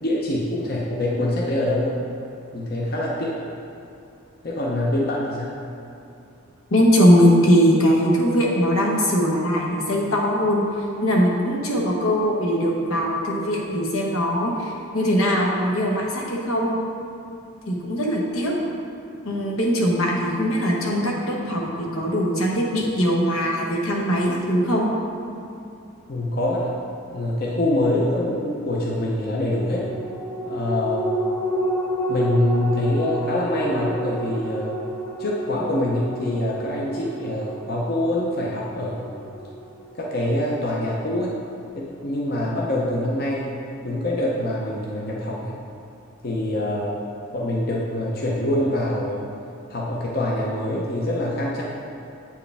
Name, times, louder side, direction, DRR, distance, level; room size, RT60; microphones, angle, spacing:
voice 1, 0.0-1.9 2.5-3.3 4.4-5.6 26.1-26.7 27.1-29.9 30.5-31.1 32.1-34.8 35.2-39.3 39.9-41.3 41.7-43.5 43.8-45.5 46.2-47.0 47.3-49.3 49.7-51.6, left 1 dB, 45° left, -4 dB, 0.7 m, -25 dB
voice 2, 6.7-10.6 11.0-16.7 17.7-18.5 19.2-24.9, equal, 85° left, -2 dB, 1.1 m, -21 dB
sound 1, 29.7-40.5 40.9-41.0, right 1 dB, 10° left, 0.4 m, -30 dB
8.3 x 4.7 x 3.4 m, 2.7 s
head